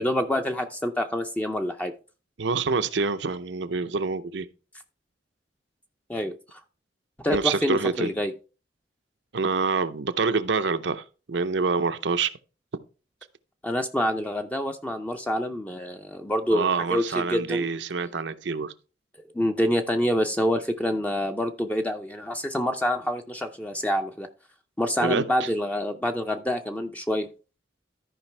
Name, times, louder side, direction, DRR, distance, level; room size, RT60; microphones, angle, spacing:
voice 1, 0.0-1.9 6.1-6.6 7.2-8.3 13.6-17.7 19.3-24.3 24.8-27.3, equal, 10° left, 0.5 m, -27 dB
voice 2, 2.4-4.5 7.3-8.1 9.3-12.3 16.5-18.7 25.0-25.5, right 4 dB, 80° right, 0.7 m, -26 dB
13.5 x 5.0 x 3.3 m
head